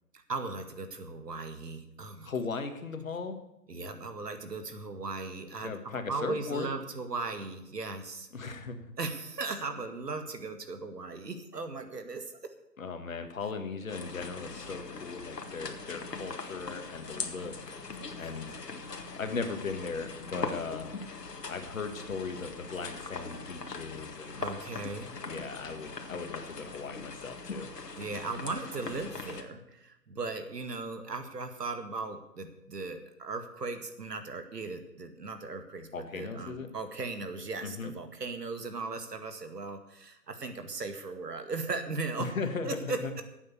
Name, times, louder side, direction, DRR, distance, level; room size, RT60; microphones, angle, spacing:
voice 1, 0.3-2.3 3.7-8.3 9.0-12.5 17.4-17.5 24.4-25.1 28.0-42.4 42.6-43.2, right 3 dB, 75° right, 7 dB, 2.1 m, -37 dB
voice 2, 2.3-3.4 5.6-6.7 8.3-8.9 12.8-18.6 19.1-21.0 21.5-24.4 25.2-27.7 35.9-36.7 37.6-37.9 42.2-43.2, left 4 dB, 55° left, 7 dB, 1.9 m, -38 dB
sound 1, 13.9-29.4, left 4 dB, 80° left, 2.0 m, -41 dB
11.0 x 8.6 x 8.4 m, 0.86 s
hypercardioid pair, 160°, 48 cm